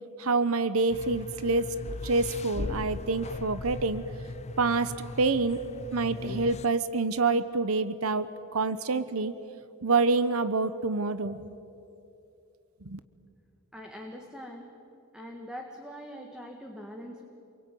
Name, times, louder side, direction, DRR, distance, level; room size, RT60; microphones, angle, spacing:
voice 1, 0.2-1.7 2.0-4.0 4.6-5.6 5.9-9.3 9.8-11.5 12.9-13.0, right 3 dB, 70° right, 13 dB, 1.0 m, -27 dB
sound 1, 0.9-6.7, left 2 dB, 30° left, 0.5 m, -39 dB
voice 2, 13.7-14.7 15.1-17.2, equal, 5° right, 2 dB, 1.9 m, -42 dB
28.0 x 22.5 x 9.3 m, 2.8 s
head